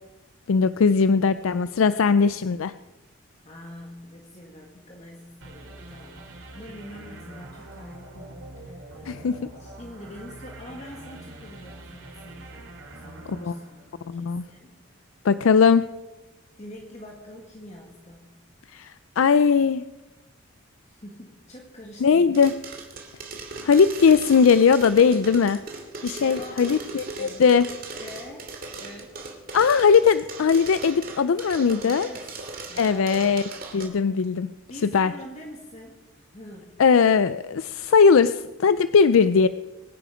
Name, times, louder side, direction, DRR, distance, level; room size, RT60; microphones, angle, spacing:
voice 1, 0.5-2.7 9.1-9.4 13.4-13.5 14.1-14.4 15.2-15.8 18.7-19.8 22.0-22.5 23.6-25.6 26.0-27.7 29.5-32.1 32.8-33.4 33.7-34.5 34.9-35.1 36.8-39.5, left 5 dB, 80° left, 14 dB, 0.4 m, -19 dB
voice 2, 3.4-9.1 9.6-15.1 16.6-18.3 20.8-22.5 26.2-27.6 28.0-28.5 28.8-29.3 31.8-32.4 32.7-33.5 34.7-36.8, left 1 dB, 30° left, 0 dB, 1.8 m, -44 dB
sound 1, 5.4-14.5, right 2 dB, 80° right, 2.8 m, -44 dB
sound 2, 22.3-33.8, right 3 dB, 45° right, 2.5 m, -38 dB
24.0 x 10.0 x 5.0 m, 1.1 s
head